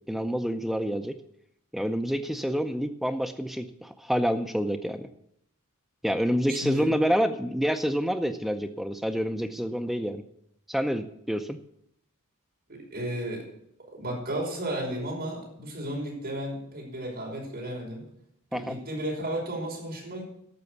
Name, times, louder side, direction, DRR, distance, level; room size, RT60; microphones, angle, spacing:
voice 1, 0.1-1.1 1.7-5.1 6.0-10.2 10.7-11.6 18.5-18.8, equal, ahead, 7 dB, 0.5 m, -28 dB
voice 2, 6.5-6.9 12.7-13.5 13.9-18.0 18.5-20.2, right 1 dB, 45° right, -2 dB, 5.4 m, -33 dB
12.0 x 6.9 x 8.1 m, 0.75 s
head